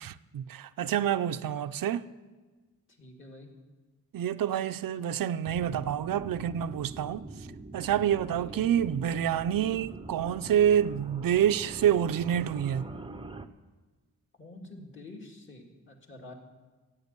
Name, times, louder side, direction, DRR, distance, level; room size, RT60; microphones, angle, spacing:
voice 1, 0.0-2.1 4.1-7.3 7.7-12.9, right 9 dB, 85° right, 0.6 m, -27 dB
voice 2, 3.0-3.5 8.3-8.7 14.4-16.3, left 2 dB, 35° left, 2.2 m, -47 dB
sound 1, 5.4-13.5, right 2 dB, 15° right, 0.6 m, -44 dB
14.5 x 8.8 x 8.2 m
wide cardioid pair, 150°, 33 cm